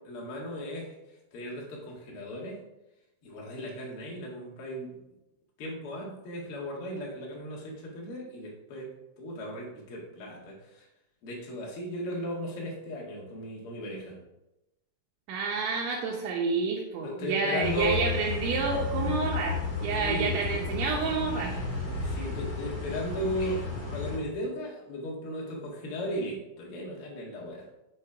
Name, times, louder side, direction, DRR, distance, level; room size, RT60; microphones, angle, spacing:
voice 1, 0.0-0.9 1.3-2.6 3.2-4.9 5.6-8.9 9.2-10.8 11.2-14.2 17.0-18.0 20.0-20.3 21.8-23.6 23.9-27.6, equal, 80° left, -3 dB, 1.2 m, -36 dB
voice 2, 15.3-21.5, right 4 dB, 75° right, -2 dB, 3.2 m, -29 dB
sound 1, 17.6-24.2, left 4 dB, 35° left, 1.4 m, -33 dB
7.0 x 6.3 x 4.8 m, 0.94 s
omnidirectional pair, 5.8 m